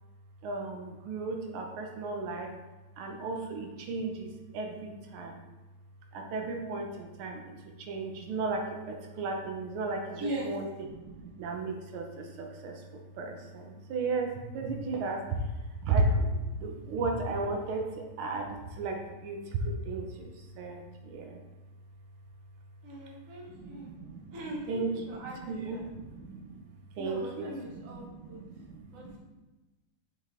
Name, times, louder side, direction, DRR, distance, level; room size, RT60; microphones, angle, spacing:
voice 1, 0.4-2.6 3.0-5.4 6.1-15.4 15.8-21.4 23.5-26.6 27.0-29.2, right 3 dB, 90° right, 3 dB, 1.7 m, -35 dB
voice 2, 10.2-10.5 22.8-23.9 24.3-25.8 27.0-28.4 28.9-29.2, right 1 dB, 45° right, -3 dB, 1.4 m, -40 dB
6.7 x 4.1 x 3.5 m, 1.1 s
omnidirectional pair, 2.3 m